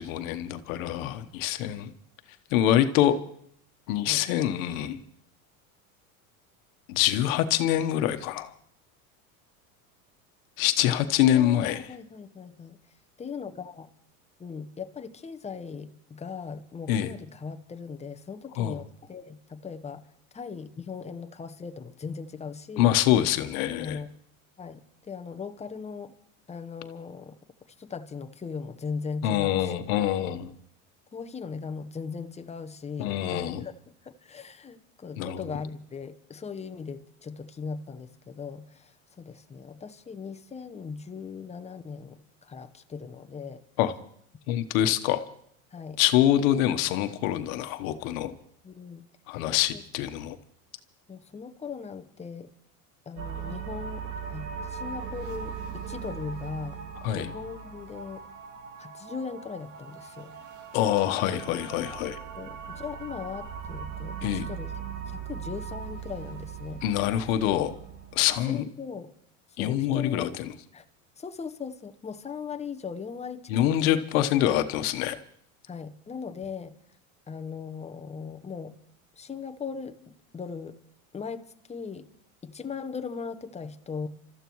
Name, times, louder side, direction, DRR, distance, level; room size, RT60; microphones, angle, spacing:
voice 1, 0.0-1.9 2.5-3.2 3.9-5.0 6.9-8.5 10.6-11.8 16.9-17.1 18.6-18.8 22.8-24.0 29.2-30.5 33.0-33.6 35.2-35.4 43.8-43.9 44.5-45.2 46.0-48.3 49.3-50.4 57.0-57.3 60.7-62.2 64.2-64.5 66.8-67.7 68.1-68.7 69.6-70.5 73.5-75.2, left 12 dB, 70° left, 9 dB, 1.2 m, -25 dB
voice 2, 11.3-12.8 13.2-13.9 14.4-22.9 23.8-24.1 24.6-26.1 26.5-27.4 27.8-29.9 31.1-33.7 34.0-43.6 45.7-46.0 48.6-49.1 49.7-49.8 51.1-52.5 53.1-56.8 57.1-58.2 58.8-60.4 62.3-64.7 65.1-66.8 68.3-69.1 69.6-70.3 70.7-70.8 71.2-74.0 75.7-76.7 77.3-78.8 79.2-80.8 81.1-82.1 82.4-84.1, left 5 dB, 15° left, 7 dB, 0.9 m, -39 dB
sound 1, 53.2-68.4, right 7 dB, 45° right, 1.7 m, -39 dB
29.5 x 14.0 x 3.1 m, 0.66 s
supercardioid pair, 110°, 42 cm